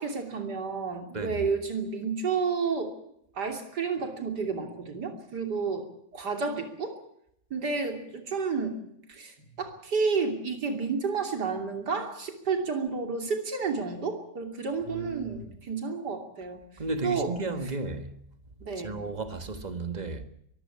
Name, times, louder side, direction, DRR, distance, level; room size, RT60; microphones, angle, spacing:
voice 1, 0.0-2.9 3.4-5.9 6.1-7.0 7.5-8.8 9.1-16.6 17.0-17.3 18.6-19.0, right 5 dB, 70° right, 3.5 m, -31 dB
voice 2, 14.9-15.4 16.8-18.1 18.8-20.3, right 3 dB, 25° right, 1.5 m, -34 dB
23.0 x 15.0 x 8.5 m
omnidirectional pair, 1.8 m